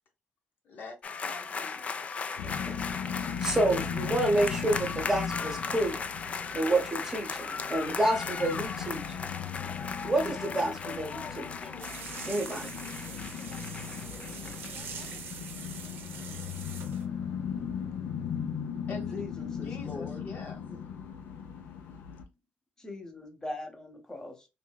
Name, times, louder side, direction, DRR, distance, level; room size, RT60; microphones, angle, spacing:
voice 1, 0.6-1.0 1.2-2.4 18.9-19.2 19.6-20.6, left 3 dB, 60° left, 4 dB, 0.8 m, -44 dB
sound 1, 1.0-15.2, left 5 dB, 35° left, 0.3 m, -37 dB
sound 2, 2.4-22.2, left 7 dB, 90° left, 0.5 m, -38 dB
voice 2, 2.4-2.8 3.4-6.0 6.5-9.2 10.0-11.5 12.3-12.7, right 1 dB, 15° right, 2 dB, 0.8 m, -29 dB
sound 3, 11.8-17.0, right 6 dB, 75° right, 0.7 m, -43 dB
voice 3, 19.1-20.2 20.7-20.8 22.8-24.5, left 2 dB, 15° left, 5 dB, 0.8 m, -41 dB
3.2 x 2.6 x 2.2 m, 0.26 s
cardioid pair, 125°, 4 cm